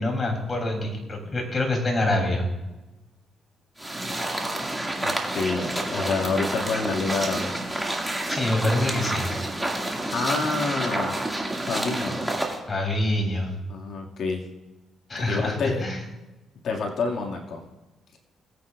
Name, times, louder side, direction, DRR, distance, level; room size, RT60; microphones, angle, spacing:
voice 1, 0.0-2.5 8.3-9.3 12.7-13.5 15.1-16.0, left 1 dB, 30° left, 2 dB, 3.1 m, -25 dB
sound 1, 3.8-12.6, right 1 dB, 10° right, 2.0 m, -29 dB
voice 2, 5.0-7.5 10.1-11.3 11.6-12.2 13.7-14.4 15.2-15.9 16.6-17.6, left 4 dB, 65° left, 0 dB, 2.0 m, -28 dB
20.0 x 8.8 x 2.4 m, 1.1 s
cardioid pair, 90°, 0 cm